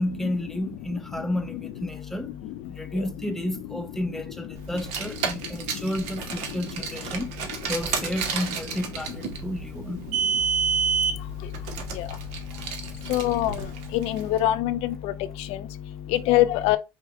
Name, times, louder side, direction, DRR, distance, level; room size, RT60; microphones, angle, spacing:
voice 1, 0.0-2.3 2.7-7.3 7.7-10.0 12.5-12.7, left 1 dB, 5° left, 0.6 m, -31 dB
Car, 4.7-14.2, right 6 dB, 80° right, 0.8 m, -29 dB
voice 2, 13.1-13.6 13.9-15.1 16.1-16.8, left 14 dB, 75° left, 0.4 m, -22 dB
5.1 x 2.1 x 3.6 m
supercardioid pair, 85°, 11 cm